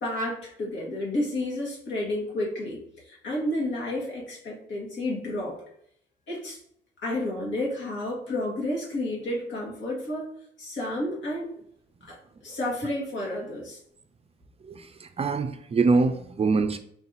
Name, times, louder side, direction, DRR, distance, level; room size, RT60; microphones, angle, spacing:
voice 1, 0.0-2.8 3.1-5.6 6.3-6.6 7.0-10.3 10.6-11.5 12.1-12.2 12.4-13.8, left 1 dB, 70° left, -3 dB, 1.9 m, -31 dB
voice 2, 14.7-16.8, right 4 dB, 30° right, 9 dB, 0.4 m, -24 dB
4.6 x 2.8 x 4.0 m, 0.69 s
cardioid pair, 90°, 20 cm